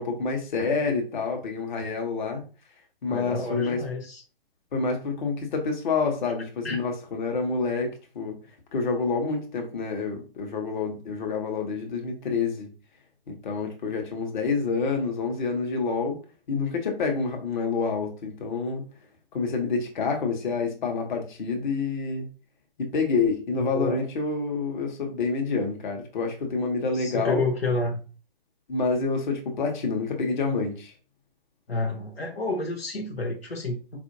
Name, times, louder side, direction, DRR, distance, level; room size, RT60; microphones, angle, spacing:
voice 1, 0.0-2.4 3.0-3.8 4.7-8.4 8.7-12.7 13.3-16.2 16.5-18.8 19.3-22.3 22.8-27.4 28.7-30.9, left 4 dB, 50° left, 1.1 m, -28 dB
voice 2, 3.1-4.2 6.6-6.8 23.6-24.0 26.9-28.0 31.7-34.0, left 2 dB, 80° left, 0.8 m, -29 dB
4.4 x 2.7 x 2.7 m
figure-of-eight pair, 120°, 30 cm